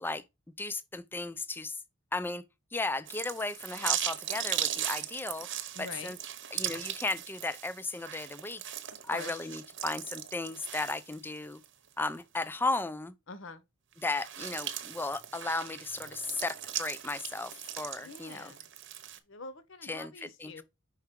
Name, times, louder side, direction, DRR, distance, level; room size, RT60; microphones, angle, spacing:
voice 1, 0.6-1.8 2.1-2.4 2.7-5.5 5.8-6.2 6.5-8.6 9.0-11.6 12.0-13.1 14.0-18.5 19.8-20.6, left 3 dB, 10° left, 0.3 m, -35 dB
sound 1, 3.1-11.6 12.1-12.2 13.9-19.2, right 11 dB, 55° right, 0.9 m, -38 dB
voice 2, 5.7-6.2 9.1-9.3 13.3-13.7 18.0-18.7 19.1-20.6, left 3 dB, 60° left, 0.9 m, -45 dB
5.7 x 4.6 x 3.6 m
head